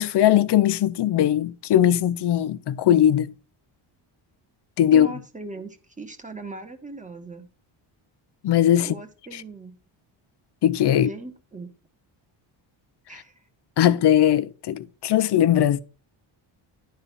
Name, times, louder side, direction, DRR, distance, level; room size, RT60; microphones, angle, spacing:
voice 1, 0.0-3.3 4.8-5.1 8.4-8.9 10.6-11.1 13.8-15.8, left 11 dB, 55° left, 0.8 m, -19 dB
voice 2, 4.9-7.5 8.8-9.8 10.9-11.7 13.1-13.4 13.8-13.9, right 2 dB, 15° right, 1.8 m, -39 dB
11.5 x 4.3 x 7.0 m
cardioid pair, 125°, 48 cm